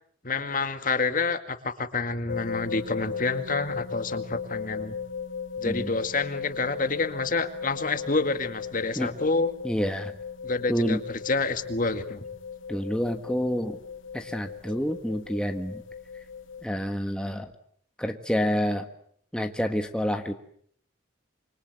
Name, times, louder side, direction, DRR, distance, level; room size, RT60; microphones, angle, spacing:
voice 1, 0.2-5.0 5.6-9.5 10.4-11.0 11.3-12.3, left 3 dB, 45° left, 9 dB, 2.1 m, -28 dB
sound 1, 2.3-16.6, left 6 dB, 90° left, 1.1 m, -37 dB
voice 2, 5.6-6.0 8.9-9.1 9.6-10.1 10.7-11.0 12.7-13.8 14.1-15.8 16.6-17.5 18.0-18.9 19.3-20.3, equal, 5° left, 5 dB, 1.5 m, -28 dB
27.0 x 25.0 x 8.1 m, 0.66 s
head